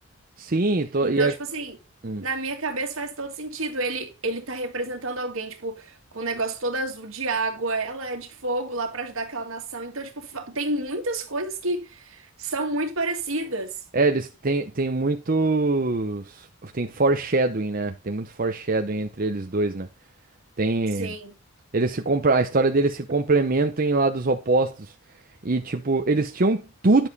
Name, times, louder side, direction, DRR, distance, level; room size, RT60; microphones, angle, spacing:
voice 1, 0.4-1.4 2.0-2.2 13.9-19.9 20.6-21.1 21.7-24.9 25.4-27.1, right 3 dB, 40° right, 0.7 m, -23 dB
voice 2, 1.0-1.8 2.2-13.7 21.0-21.4, right 2 dB, 70° right, 2.1 m, -30 dB
10.5 x 7.1 x 4.1 m
head